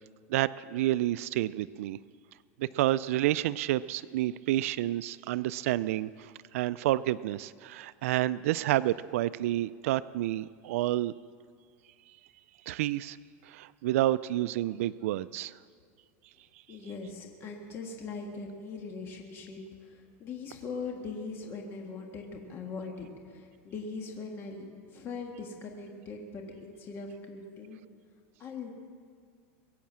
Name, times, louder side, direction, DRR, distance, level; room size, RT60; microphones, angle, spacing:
voice 1, 0.3-2.0 2.6-11.1 12.7-13.2 13.4-15.6, right 14 dB, 75° right, 17 dB, 0.3 m, -29 dB
voice 2, 16.7-27.8 28.4-28.7, left 4 dB, 30° left, 1 dB, 1.7 m, -41 dB
22.0 x 8.7 x 7.4 m, 2.1 s
supercardioid pair, 155°, 8 cm